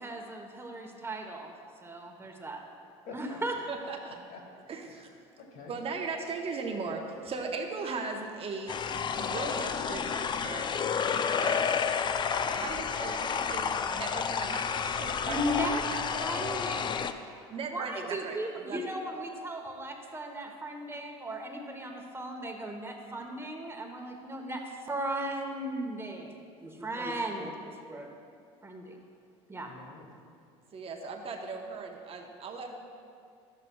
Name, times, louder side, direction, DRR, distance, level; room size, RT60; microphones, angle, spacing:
voice 1, 0.0-1.5 1.8-2.6 3.1-3.6 15.3-15.8 16.2-17.1 17.7-28.1 28.6-29.0 29.5-29.7, right 1 dB, 15° right, 2 dB, 1.1 m, -36 dB
voice 2, 3.0-3.4 4.3-5.8 29.6-30.1, left 4 dB, 65° left, 1 dB, 1.4 m, -49 dB
voice 3, 3.7-4.2 4.7-5.1 5.7-10.9 11.4-11.8 12.3-16.7 17.5-18.9 30.7-32.8, right 4 dB, 40° right, 3 dB, 0.9 m, -38 dB
sound 1, 8.7-17.1, left 6 dB, 30° left, 0.4 m, -30 dB
11.5 x 7.7 x 2.3 m, 2.3 s
hypercardioid pair, 75°, 15 cm